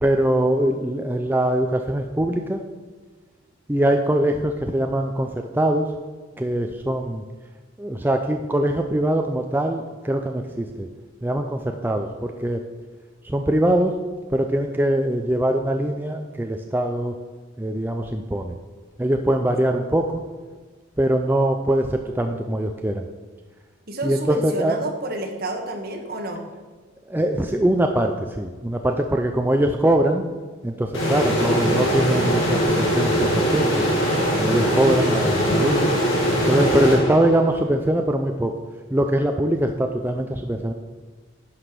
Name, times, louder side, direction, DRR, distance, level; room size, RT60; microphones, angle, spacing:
voice 1, 0.0-2.6 3.7-5.9 6.4-7.2 7.8-10.9 11.2-12.6 13.2-13.9 14.3-17.2 17.6-18.6 19.0-20.2 21.0-23.1 24.0-24.8 27.1-30.3 30.6-33.8 34.4-35.9 36.4-38.5 38.9-40.7, right 1 dB, 10° right, 4 dB, 0.4 m, -22 dB
voice 2, 23.9-26.4, right 1 dB, 50° right, 3 dB, 1.4 m, -29 dB
sound 1, 30.9-37.6, equal, 75° left, 2.2 m, -21 dB
11.0 x 5.0 x 6.0 m, 1.5 s
head